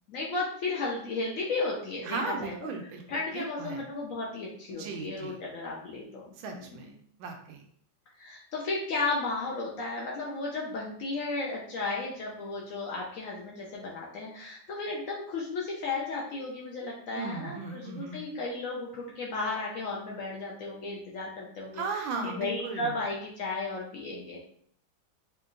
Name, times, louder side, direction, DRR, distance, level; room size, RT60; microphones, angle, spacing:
voice 1, 0.1-2.5 2.8-6.9 8.2-24.4, left 3 dB, 85° left, -3 dB, 0.7 m, -34 dB
voice 2, 2.0-3.8 4.7-5.4 6.4-6.9 7.2-7.6 17.1-18.2 21.7-22.9, right 4 dB, 80° right, 3 dB, 1.3 m, -36 dB
4.4 x 2.5 x 2.5 m, 0.62 s
omnidirectional pair, 2.2 m